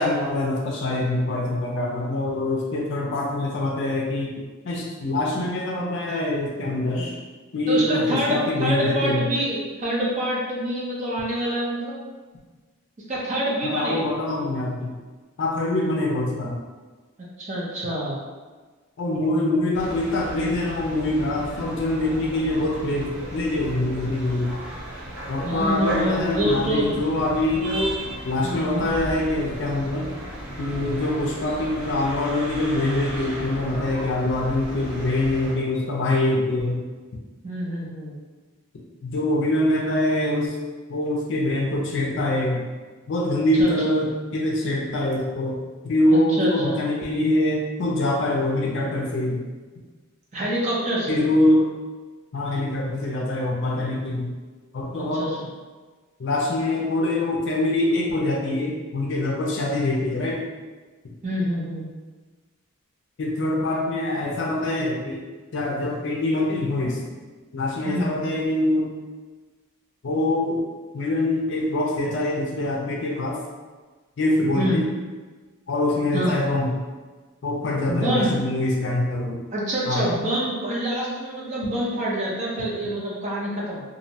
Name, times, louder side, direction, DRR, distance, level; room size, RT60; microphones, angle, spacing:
voice 1, 0.0-4.3 4.7-7.2 7.5-9.2 13.6-14.9 15.4-16.6 19.0-24.6 25.3-27.7 28.3-30.1 30.6-36.8 39.0-40.5 40.9-42.6 43.1-45.6 45.8-49.4 51.1-51.6 52.3-54.3 54.7-55.3 56.2-60.4 63.2-65.2 65.5-67.0 67.5-68.9 70.0-70.6 70.9-73.4 74.2-74.9 75.7-76.7 77.4-79.4 79.9-80.1, left 1 dB, 55° left, -2 dB, 0.4 m, -24 dB
voice 2, 7.7-12.0 13.1-14.1 17.4-18.2 25.4-26.9 27.5-27.9 28.4-28.9 37.4-38.1 43.5-43.9 46.1-46.8 50.3-51.2 55.0-55.5 61.2-61.8 67.8-68.2 74.5-74.8 76.1-76.4 77.9-78.4 79.5-83.8, right 1 dB, 30° right, -5 dB, 0.5 m, -26 dB
sound 1, 19.7-35.5, right 1 dB, 65° right, 0.8 m, -35 dB
2.6 x 2.1 x 2.7 m, 1.3 s
head